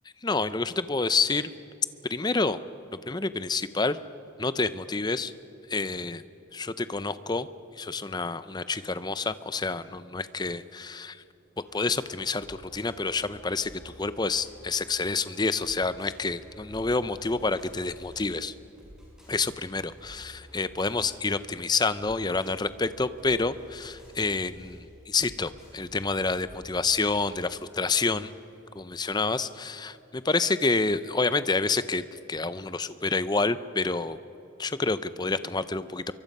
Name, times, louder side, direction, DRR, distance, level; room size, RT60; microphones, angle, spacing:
voice 1, 0.2-1.5 2.1-2.6 3.1-4.0 4.4-5.3 5.7-6.2 6.5-7.5 7.8-11.2 11.7-18.5 19.3-28.3 28.8-32.0 32.3-34.2 34.6-36.1, left 3 dB, 20° left, 14 dB, 0.6 m, -28 dB
sound 1, 11.6-27.3, equal, 5° right, 6.9 m, -52 dB
26.0 x 23.5 x 5.4 m, 2.9 s
head